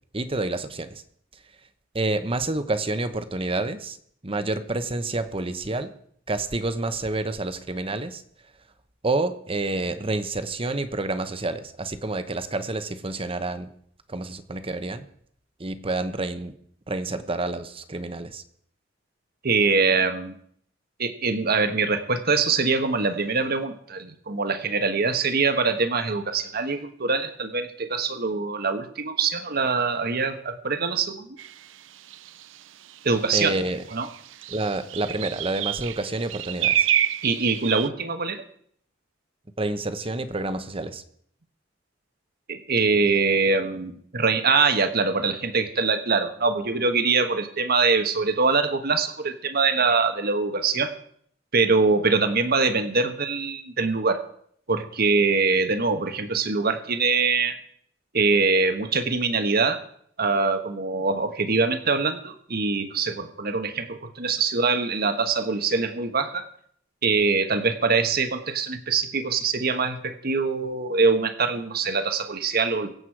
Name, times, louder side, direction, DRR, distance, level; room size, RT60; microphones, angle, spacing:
voice 1, 0.1-1.0 1.9-4.0 4.2-5.9 6.3-8.2 9.0-13.7 14.1-15.1 15.6-16.5 16.9-18.4 33.3-33.8 34.5-36.9 39.6-41.0, right 2 dB, 30° right, 10 dB, 1.1 m, -28 dB
voice 2, 19.4-20.4 21.0-31.3 33.0-33.5 33.9-34.1 37.2-38.4 42.5-50.9 51.5-54.2 54.7-57.6 58.1-59.8 60.2-66.5 67.0-72.9, right 4 dB, 55° right, 8 dB, 1.3 m, -23 dB
sound 1, 31.4-31.5 32.1-32.4 33.3-33.4 33.7-37.9, right 10 dB, 80° right, 0.6 m, -27 dB
23.5 x 8.2 x 4.7 m, 0.64 s
head